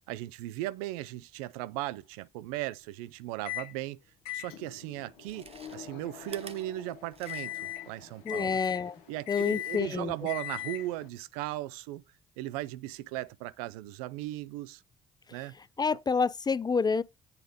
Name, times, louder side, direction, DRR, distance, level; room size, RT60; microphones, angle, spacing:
voice 1, 0.0-4.0 4.3-8.6 9.1-12.0 12.4-14.8 15.3-15.5 15.9-16.0, right 16 dB, 75° right, 0.4 m, -37 dB
Microwave oven, 3.5-3.7 4.3-11.1, left 13 dB, 80° left, 1.0 m, -40 dB
Chewing mastication, 4.4-4.5 5.1-7.8 8.1-8.2, right 5 dB, 30° right, 1.1 m, -50 dB
voice 2, 8.2-9.0 9.3-10.3 15.8-17.0, left 5 dB, 20° left, 0.4 m, -28 dB
8.2 x 3.3 x 5.0 m
hypercardioid pair, 50°, 19 cm